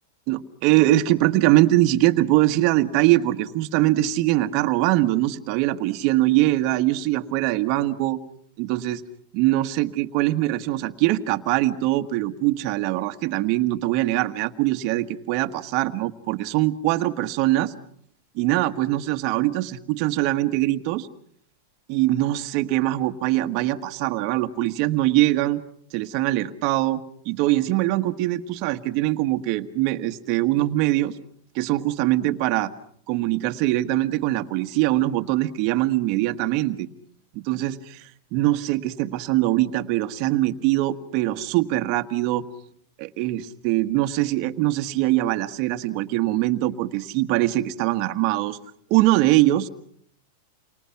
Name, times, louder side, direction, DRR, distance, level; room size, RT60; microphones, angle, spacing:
voice 1, 0.3-8.2 8.6-9.0 9.3-17.7 18.3-21.1 21.9-25.6 25.9-27.0 27.2-31.2 31.5-32.7 33.1-36.9 37.3-42.4 43.0-48.6 48.9-49.7, right 16 dB, 45° right, 9 dB, 1.4 m, -22 dB
29.5 x 24.5 x 5.9 m, 0.65 s
supercardioid pair, 145°, 0 cm